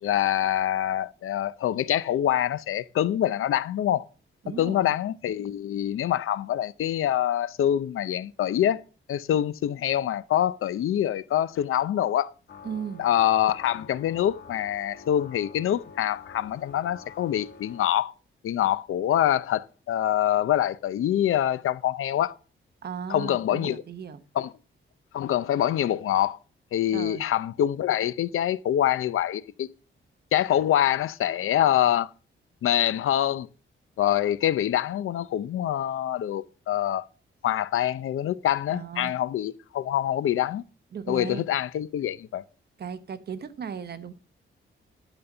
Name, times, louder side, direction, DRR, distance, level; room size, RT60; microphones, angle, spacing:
voice 1, 0.0-4.0 4.6-8.8 9.1-12.3 13.0-18.1 18.4-22.3 23.1-23.8 24.3-24.5 25.1-26.4 26.7-29.7 30.3-32.1 32.6-33.5 34.0-37.1 37.4-40.6 41.1-42.4, left 11 dB, 85° left, 0.6 m, -25 dB
voice 2, 4.4-4.9 12.6-13.1 22.8-24.2 26.9-27.2 38.7-39.1 40.9-41.4 42.8-44.1, right 7 dB, 50° right, 0.9 m, -36 dB
sound 1, 12.5-17.9, left 5 dB, 60° left, 1.8 m, -47 dB
11.0 x 5.4 x 6.7 m
wide cardioid pair, 150°, 21 cm